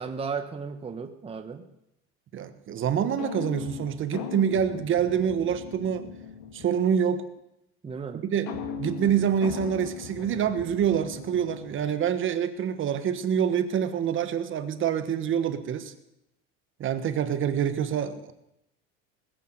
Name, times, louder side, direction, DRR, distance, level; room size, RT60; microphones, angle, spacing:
voice 1, 0.0-1.6 7.8-8.2, right 5 dB, 20° right, 6 dB, 1.1 m, -34 dB
voice 2, 2.3-6.1 6.5-7.2 8.1-15.9 16.8-18.3, right 8 dB, 40° right, 10 dB, 1.3 m, -26 dB
sound 1, 3.2-6.9 8.5-12.1, left 7 dB, 65° left, 2.0 m, -39 dB
19.0 x 8.5 x 7.9 m, 0.84 s
cardioid pair, 125°, 31 cm